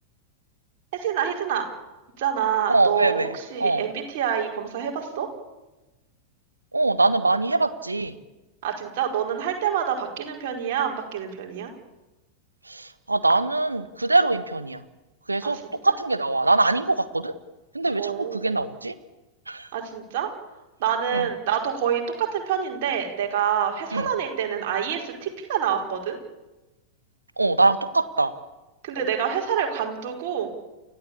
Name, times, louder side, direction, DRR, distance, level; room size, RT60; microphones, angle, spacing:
voice 1, 0.9-1.7 2.2-5.3 8.6-11.7 15.4-15.5 18.0-18.4 19.7-20.3 20.8-26.2 28.8-30.5, right 8 dB, 50° right, 1 dB, 4.8 m, -27 dB
voice 2, 2.7-3.8 6.7-8.2 12.7-14.8 15.3-15.6 15.8-17.3 17.7-18.9 19.5-19.7 21.1-21.3 23.9-24.1 27.4-28.3, right 2 dB, 80° right, 13 dB, 1.4 m, -23 dB
29.5 x 14.0 x 8.6 m, 1.1 s
figure-of-eight pair, 90°, 0 cm